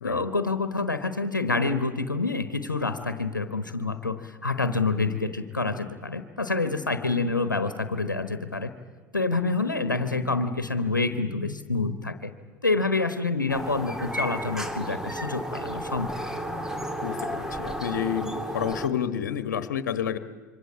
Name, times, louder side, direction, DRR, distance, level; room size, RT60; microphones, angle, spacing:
voice 1, 0.0-8.7 9.1-12.3 12.6-16.1, left 3 dB, 85° left, 10 dB, 1.2 m, -27 dB
sound 1, 13.5-18.9, equal, 5° right, 2.5 m, -33 dB
voice 2, 17.0-20.2, left 9 dB, 65° left, 13 dB, 1.4 m, -29 dB
27.0 x 24.0 x 8.7 m, 1.4 s
figure-of-eight pair, 80°, 10 cm